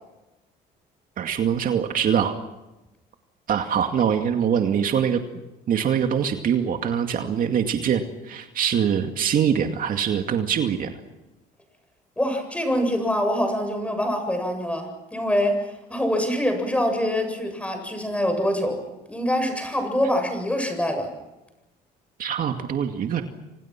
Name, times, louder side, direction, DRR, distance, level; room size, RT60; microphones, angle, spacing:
voice 1, 1.2-2.3 3.5-5.2 5.7-10.9 22.2-23.2, right 8 dB, 55° right, 5 dB, 2.3 m, -23 dB
voice 2, 12.2-18.8 19.1-21.1, equal, 5° left, 6 dB, 7.9 m, -25 dB
30.0 x 25.5 x 6.1 m, 0.99 s
cardioid pair, 110°, 17 cm